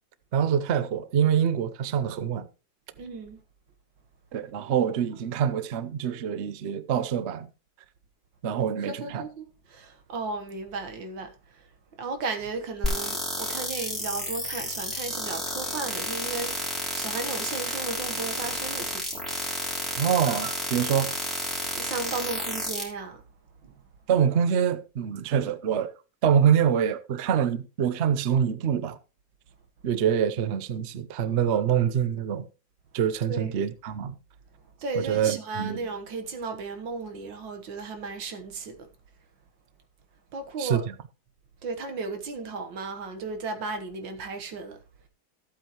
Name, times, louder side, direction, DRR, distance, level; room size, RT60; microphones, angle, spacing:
voice 1, 0.3-2.5 4.3-7.5 8.4-9.2 20.0-21.1 24.1-25.9 26.2-29.0 29.8-32.5 32.9-34.1 34.9-35.8 40.6-40.8, right 8 dB, 55° right, 0.8 m, -25 dB
voice 2, 3.0-3.4 8.8-11.3 12.0-16.6 16.9-19.2 21.7-23.2 23.6-23.7 33.3-33.6 34.8-38.8 40.3-40.8 41.6-44.8, right 4 dB, 85° right, 2.0 m, -35 dB
sound 1, 12.8-22.8, left 1 dB, ahead, 3.1 m, -31 dB
14.5 x 8.3 x 3.0 m
omnidirectional pair, 2.0 m